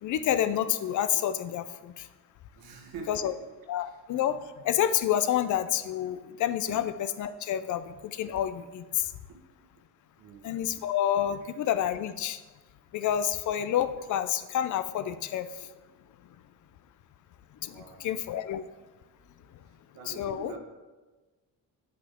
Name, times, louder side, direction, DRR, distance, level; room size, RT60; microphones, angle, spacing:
voice 1, 0.0-2.1 3.1-3.3 3.7-6.9 7.2-9.1 10.4-12.4 12.9-15.5 17.6-18.6 20.1-20.6, left 10 dB, 55° left, 12 dB, 0.5 m, -29 dB
voice 2, 2.5-3.5 6.7-6.8 10.2-10.9 11.4-11.5 17.7-18.1 19.7-20.6, right 5 dB, 85° right, 2 dB, 1.6 m, -45 dB
8.6 x 7.9 x 3.6 m, 1.2 s
cardioid pair, 135°, 35 cm